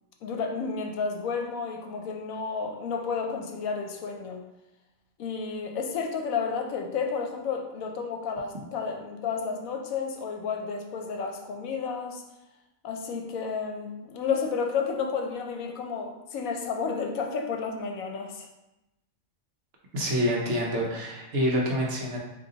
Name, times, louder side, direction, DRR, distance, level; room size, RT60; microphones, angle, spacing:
voice 1, 0.2-4.4 5.2-12.2 12.8-18.5, left 5 dB, 80° left, 3 dB, 1.0 m, -31 dB
voice 2, 19.9-22.2, equal, 60° right, -2 dB, 1.0 m, -27 dB
3.8 x 2.8 x 3.8 m, 0.95 s
omnidirectional pair, 1.5 m